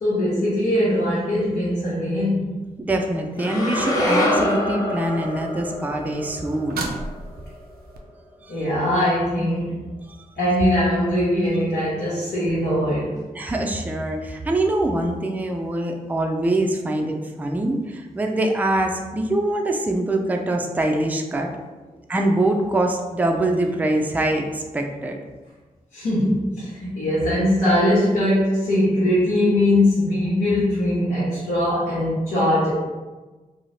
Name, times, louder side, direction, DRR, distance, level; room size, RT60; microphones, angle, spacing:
voice 1, 0.0-2.5 8.5-9.8 10.4-13.1 25.9-32.7, left 1 dB, 85° left, -10 dB, 0.8 m, -21 dB
voice 2, 2.8-6.9 8.4-8.6 10.1-10.2 13.3-21.5 22.1-25.2, right 1 dB, 10° right, 2 dB, 0.3 m, -24 dB
sound 1, 3.4-7.6, left 1 dB, 20° left, 0.8 m, -25 dB
sound 2, 4.9-8.0 11.5-11.6, right 3 dB, 80° right, 0.4 m, -36 dB
2.6 x 2.0 x 3.0 m, 1.2 s
cardioid pair, 45°, 16 cm